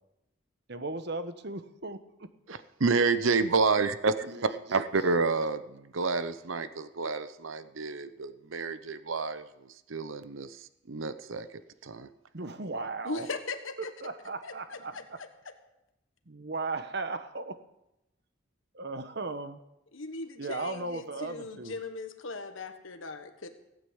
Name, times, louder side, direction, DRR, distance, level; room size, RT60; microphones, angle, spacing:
voice 1, 0.7-2.3 4.3-5.2 12.3-13.3 13.8-15.0 16.3-17.6 18.7-19.6 20.4-21.8, right 3 dB, 55° right, 10 dB, 1.1 m, -37 dB
voice 2, 2.5-9.5 9.9-10.6 10.9-11.5 11.8-12.1, right 4 dB, 90° right, 13 dB, 0.8 m, -29 dB
voice 3, 13.0-13.9 14.4-15.5 19.9-23.5, left 3 dB, 85° left, 7 dB, 1.4 m, -39 dB
16.5 x 8.9 x 8.0 m, 0.87 s
head